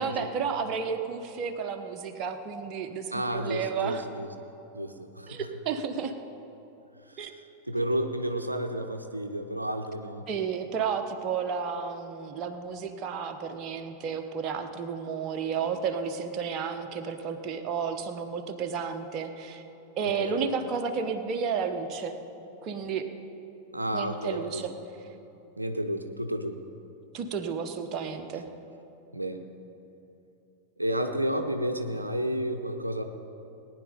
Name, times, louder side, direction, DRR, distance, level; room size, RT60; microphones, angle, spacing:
voice 1, 0.0-4.0 5.3-6.1 7.2-7.3 10.3-19.6 20.0-22.2 22.6-23.1 23.9-24.7 27.1-28.5, right 6 dB, 35° right, 5 dB, 1.0 m, -32 dB
voice 2, 3.1-4.3 4.7-5.5 7.0-7.3 7.6-10.3 15.6-15.7 20.0-20.8 23.7-24.6 25.6-26.6 29.1-29.5 30.8-33.0, right 1 dB, 85° right, 6 dB, 0.7 m, -31 dB
19.0 x 9.9 x 5.1 m, 2.9 s
figure-of-eight pair, 90°, 0 cm